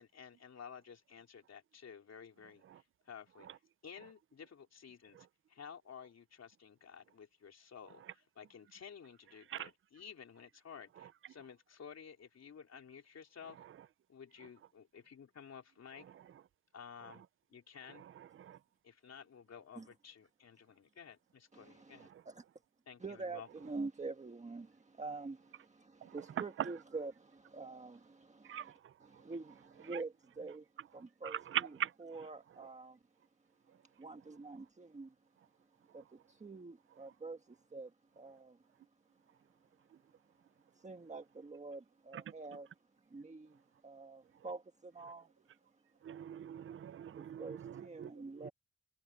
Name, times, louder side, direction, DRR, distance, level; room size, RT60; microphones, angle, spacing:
voice 1, 0.0-3.5 3.8-13.6 14.1-16.1 16.7-17.2 17.5-18.1 18.8-22.1 22.9-23.5, left 7 dB, 55° left, 3.5 m, -53 dB
voice 2, 21.5-22.4 23.0-28.7 29.0-30.7 30.9-31.7 32.0-33.0 34.0-35.1 35.9-37.9 38.2-38.6 40.8-42.7 43.1-45.3 47.1-48.5, right 3 dB, 20° right, 1.4 m, -46 dB
voice 3, 31.2-31.9 46.0-48.1, right 10 dB, 40° right, 0.5 m, -40 dB
wide cardioid pair, 180°, 32 cm